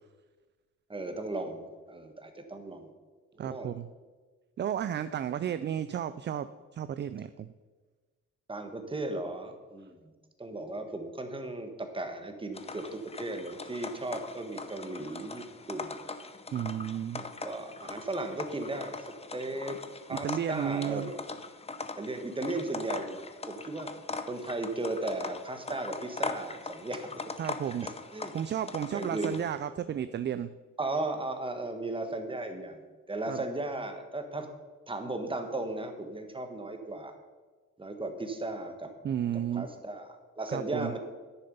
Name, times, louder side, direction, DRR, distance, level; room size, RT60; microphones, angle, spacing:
voice 1, 0.9-2.9 3.3-3.7 8.5-10.1 10.4-15.9 17.2-19.1 19.3-19.8 20.1-21.2 21.9-23.2 23.5-23.9 24.3-27.1 27.4-27.5 27.8-28.3 28.9-29.3 30.8-32.8 33.1-34.5 34.9-37.1 37.8-38.9 39.5-41.0, right 2 dB, 15° right, 6 dB, 1.4 m, -36 dB
voice 2, 3.4-3.9 4.6-6.5 6.7-7.5 16.5-17.2 20.1-21.1 27.4-27.9 28.3-30.5 33.3-33.4 39.0-39.7 40.5-40.9, right 9 dB, 35° right, 13 dB, 0.4 m, -33 dB
sound 1, 12.5-29.5, left 3 dB, 20° left, 0.7 m, -41 dB
10.0 x 6.9 x 5.4 m, 1.3 s
cardioid pair, 90°, 30 cm